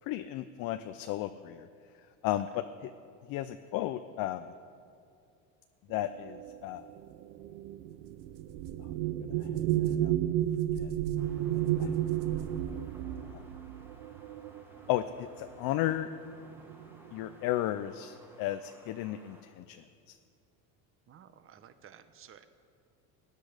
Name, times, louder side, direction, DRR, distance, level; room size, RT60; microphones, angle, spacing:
voice 1, 0.1-1.7 2.2-2.9 3.3-4.5 5.9-6.8 9.2-9.5 10.0-10.3 10.8-10.9 11.8-12.0 13.3-13.4 14.9-16.1 17.1-20.2, left 13 dB, 55° left, 10 dB, 0.6 m, -34 dB
sound 1, 6.2-15.1 16.0-16.2 16.5-17.1, right 12 dB, 85° right, 0.7 m, -32 dB
sound 2, 7.4-7.5 8.0-13.0, right 5 dB, 65° right, 1.3 m, -47 dB
sound 3, 11.2-19.4, right 1 dB, 5° right, 1.8 m, -58 dB
voice 2, 21.1-22.5, right 9 dB, 30° right, 11 dB, 0.8 m, -54 dB
18.5 x 10.0 x 5.0 m, 2.4 s
supercardioid pair, 120°, 42 cm